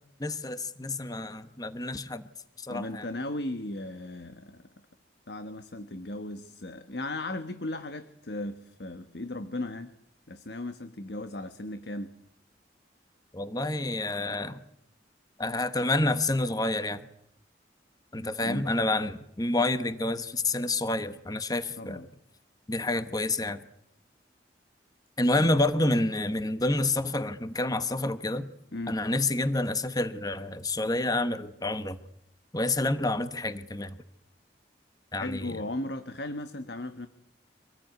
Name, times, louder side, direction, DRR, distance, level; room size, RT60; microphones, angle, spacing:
voice 1, 0.2-2.2 2.6-3.1 13.3-14.6 15.4-17.1 18.1-22.1 22.7-23.6 25.2-28.5 28.9-32.0 32.5-34.0 35.1-35.6, left 2 dB, 20° left, 11 dB, 1.2 m, -28 dB
voice 2, 2.7-4.7 5.3-9.9 10.3-12.1 18.4-18.7 21.8-22.1 25.4-25.6 28.7-29.0 35.2-37.1, left 1 dB, 70° left, 9 dB, 1.4 m, -36 dB
26.0 x 19.0 x 9.4 m, 0.75 s
head